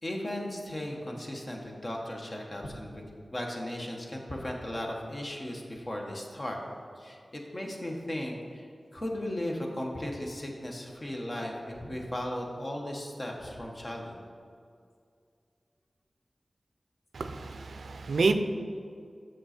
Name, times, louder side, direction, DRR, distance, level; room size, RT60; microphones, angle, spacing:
voice 1, 0.0-3.0 3.3-6.6 7.0-14.2, left 1 dB, 45° left, 0 dB, 1.4 m, -36 dB
voice 2, 17.1-18.3, right 4 dB, 90° right, 8 dB, 0.4 m, -28 dB
7.7 x 6.3 x 4.4 m, 2.2 s
cardioid pair, 45°, 0 cm